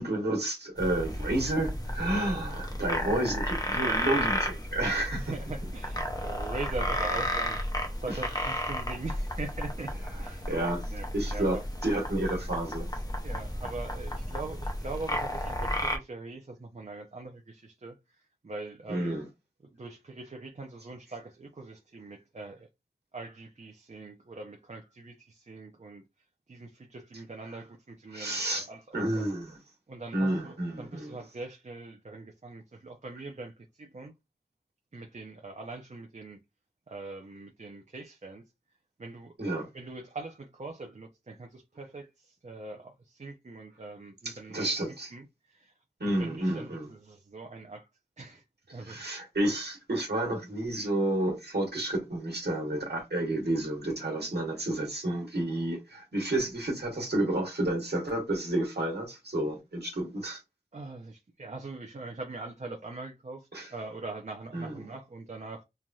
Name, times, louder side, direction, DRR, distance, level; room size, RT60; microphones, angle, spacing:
voice 1, 0.0-5.3 8.1-8.2 10.5-12.9 18.9-19.3 28.1-28.7 28.9-29.6 30.1-31.2 39.4-39.7 44.2-45.1 46.0-46.9 48.7-60.4 63.5-63.7 64.5-64.8, right 1 dB, 85° right, 1.3 m, -30 dB
sound 1, 0.8-16.0, left 1 dB, 25° left, 0.7 m, -33 dB
voice 2, 5.2-7.6 8.0-9.9 10.2-10.6 10.9-11.6 13.2-19.2 19.7-22.7 23.1-26.0 26.5-29.4 29.9-34.1 34.9-36.4 36.9-38.4 39.0-39.4 39.7-44.6 45.1-45.7 46.0-47.9 48.2-48.4 48.7-49.0 60.7-65.6, right 3 dB, 45° right, 0.5 m, -42 dB
3.1 x 2.6 x 2.3 m
wide cardioid pair, 50°, 17 cm